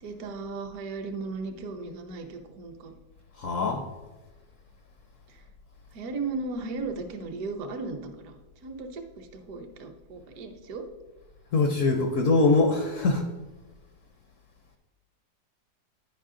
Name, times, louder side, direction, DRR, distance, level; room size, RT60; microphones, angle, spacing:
voice 1, 0.0-2.9 5.3-5.4 5.9-10.9, right 3 dB, 65° right, 5 dB, 1.2 m, -36 dB
voice 2, 3.4-3.9 11.5-13.3, left 3 dB, 65° left, 5 dB, 0.8 m, -23 dB
9.2 x 5.3 x 3.7 m, 1.2 s
omnidirectional pair, 1.9 m